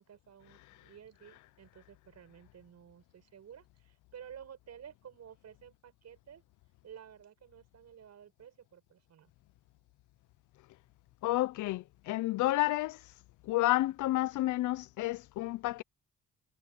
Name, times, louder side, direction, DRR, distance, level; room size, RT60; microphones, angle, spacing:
voice 1, 0.0-6.4 6.8-9.3, right 9 dB, 60° right, 7.1 m, -53 dB
voice 2, 11.2-13.1 13.4-15.8, left 17 dB, 75° left, 0.6 m, -30 dB
cardioid pair, 90°, 30 cm